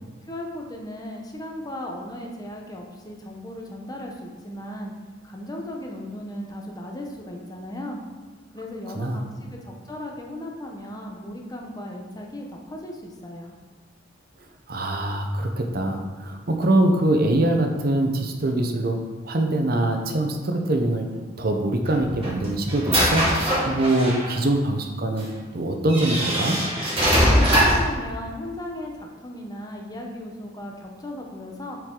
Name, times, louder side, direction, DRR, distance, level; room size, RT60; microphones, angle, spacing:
voice 1, 0.3-4.9 5.2-8.0 8.5-13.5 27.1-31.8, left 1 dB, 20° left, 0 dB, 0.9 m, -36 dB
voice 2, 14.7-21.1 21.4-23.3 23.6-25.3 25.5-26.6, right 1 dB, 55° right, 4 dB, 0.8 m, -23 dB
sound 1, 21.9-24.3 25.2-25.3 25.9-27.9, equal, 30° right, 2.0 m, -21 dB
7.6 x 4.7 x 3.8 m, 1.4 s
head